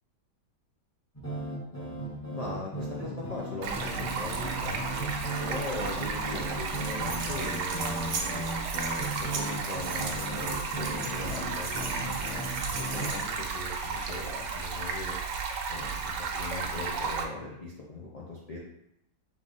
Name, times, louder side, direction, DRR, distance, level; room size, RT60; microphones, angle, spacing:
sound 1, 1.1-13.1, right 1 dB, 10° left, 0.8 m, -37 dB
voice 1, 2.3-4.8 5.4-8.5 9.2-12.4 12.8-15.2 15.7-18.6, left 2 dB, 80° left, -4 dB, 0.3 m, -40 dB
Stream, 3.6-17.2, right 5 dB, 90° right, 1.2 m, -34 dB
sound 2, 6.6-13.6, right 4 dB, 55° right, 0.9 m, -39 dB
3.8 x 3.3 x 3.9 m, 0.79 s
omnidirectional pair, 1.8 m